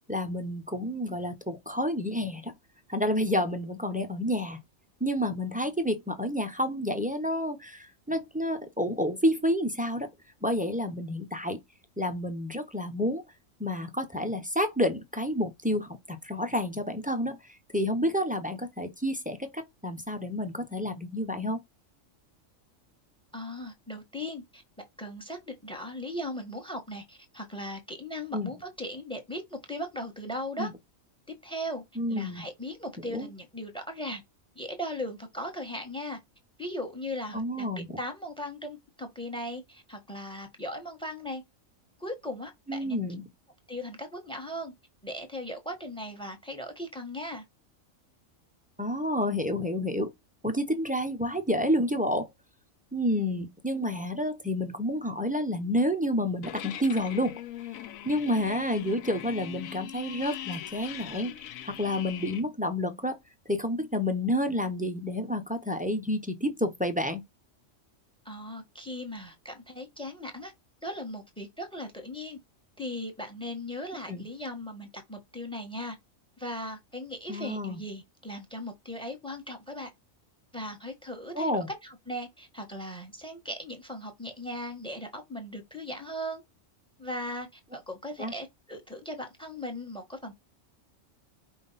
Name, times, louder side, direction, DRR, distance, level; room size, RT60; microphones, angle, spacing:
voice 1, 0.1-2.5 2.9-4.6 5.0-10.1 10.4-11.6 12.0-13.2 13.6-17.4 17.7-21.6 28.3-28.5 30.6-30.7 32.0-32.4 33.1-33.3 37.3-37.9 42.7-43.2 48.8-50.1 50.4-52.3 52.9-57.3 58.0-63.2 63.5-67.2 74.1-74.2 77.3-77.8 81.3-81.7 88.2-88.3, equal, 10° right, 0.4 m, -29 dB
voice 2, 23.3-24.6 25.0-30.7 31.4-31.8 32.1-34.2 34.5-36.2 36.6-41.4 42.0-43.0 43.7-44.7 45.0-47.4 68.2-70.5 70.8-72.4 72.8-75.9 76.4-79.9 80.5-86.4 87.0-90.3, left 1 dB, 5° left, 1.1 m, -38 dB
sound 1, 56.4-62.4, left 11 dB, 90° left, 1.0 m, -41 dB
5.3 x 2.5 x 4.0 m
omnidirectional pair, 1.3 m